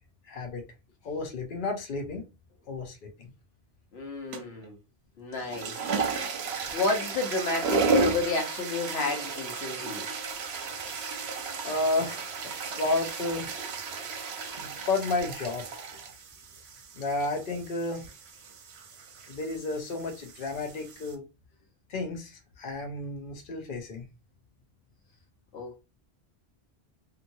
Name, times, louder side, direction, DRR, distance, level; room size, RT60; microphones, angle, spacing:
voice 1, 0.2-0.6 1.0-2.2 2.7-3.3 11.6-12.4 12.6-13.5 14.7-15.8 17.0-18.1 19.3-21.2 21.9-24.0, left 2 dB, 60° left, 0.8 m, -32 dB
voice 2, 3.9-4.8 5.2-5.9 6.7-10.0 25.5-25.8, left 3 dB, 80° left, 1.2 m, -31 dB
sound 1, 4.3-4.7 5.3-21.1, right 4 dB, 85° right, 0.9 m, -33 dB
2.9 x 2.5 x 2.6 m
omnidirectional pair, 1.1 m